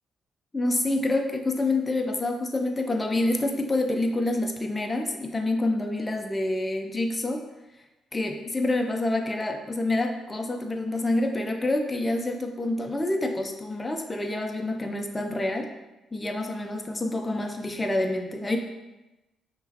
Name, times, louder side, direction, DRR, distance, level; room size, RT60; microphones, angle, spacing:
voice 1, 0.5-7.4 8.1-15.7 16.1-18.6, left 2 dB, 20° left, 3 dB, 0.4 m, -27 dB
5.4 x 2.9 x 2.8 m, 1.0 s
cardioid pair, 90°, 0 cm